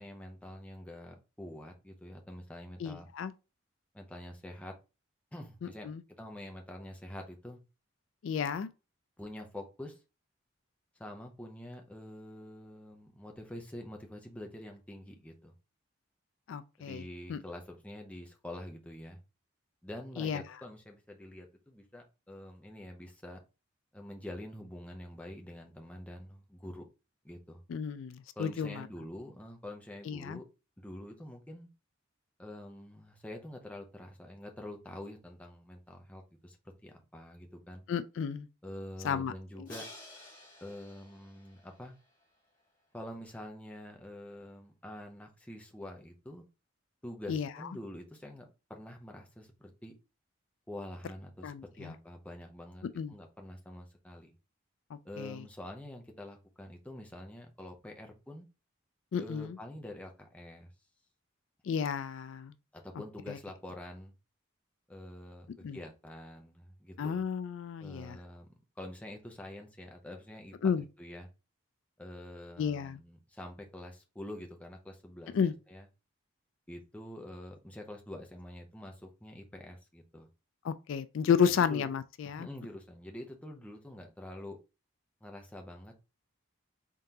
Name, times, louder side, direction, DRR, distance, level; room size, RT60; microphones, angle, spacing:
voice 1, 0.0-3.1 3.9-4.8 5.3-5.9 6.2-7.6 9.2-10.0 11.0-15.5 16.8-19.2 19.8-23.4 23.9-26.8 27.2-27.6 28.4-30.5 30.8-31.7 32.4-36.6 36.8-37.8 38.6-39.9 40.6-41.9 42.9-46.4 47.0-49.9 50.7-54.3 55.0-58.5 59.2-60.7 62.7-64.1 64.9-67.2 67.8-68.5 68.8-70.5 71.0-71.3 72.0-75.8 76.7-80.3 81.7-81.9 82.4-84.6 85.2-86.0, left 1 dB, 5° left, 0.6 m, -46 dB
voice 2, 2.8-3.3 5.6-6.0 8.2-8.7 16.5-17.4 20.2-20.4 27.7-28.9 30.1-30.4 37.9-38.5 39.0-39.3 39.6-39.7 47.3-47.5 51.4-51.9 53.0-53.1 54.9-55.4 59.1-59.6 61.6-62.5 63.3-63.4 65.6-65.8 67.0-68.2 70.6-70.8 72.6-73.0 75.3-75.5 80.6-82.5, left 7 dB, 70° left, 0.3 m, -32 dB
Crash cymbal, 39.7-42.6, left 2 dB, 40° left, 1.8 m, -51 dB
3.7 x 3.7 x 2.8 m
head